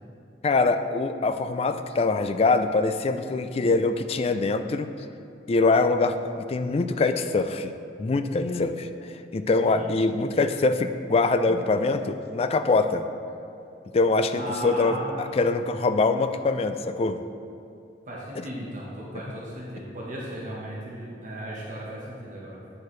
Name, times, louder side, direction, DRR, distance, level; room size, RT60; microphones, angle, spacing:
voice 1, 0.4-4.9 5.5-13.0 13.9-15.0 15.3-17.2 18.4-18.5, left 3 dB, 35° left, 9 dB, 0.3 m, -24 dB
voice 2, 14.3-15.4 18.0-22.6, right 1 dB, 45° right, -5 dB, 1.1 m, -36 dB
8.5 x 6.6 x 3.2 m, 2.6 s
head